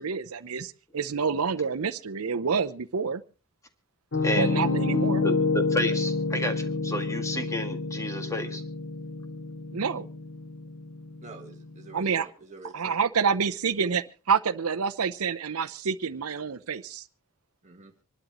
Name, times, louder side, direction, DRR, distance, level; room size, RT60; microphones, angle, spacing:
voice 1, 0.0-3.2 4.4-5.2 9.7-10.1 11.9-12.3 12.7-17.0, right 6 dB, 75° right, 0.7 m, -28 dB
Piano, 4.1-12.0, left 3 dB, 60° left, 1.2 m, -29 dB
voice 2, 4.2-4.6 5.2-8.6, left 1 dB, 15° left, 1.8 m, -31 dB
voice 3, 11.2-13.0 17.6-17.9, right 3 dB, 35° right, 1.4 m, -46 dB
26.0 x 12.0 x 3.0 m
head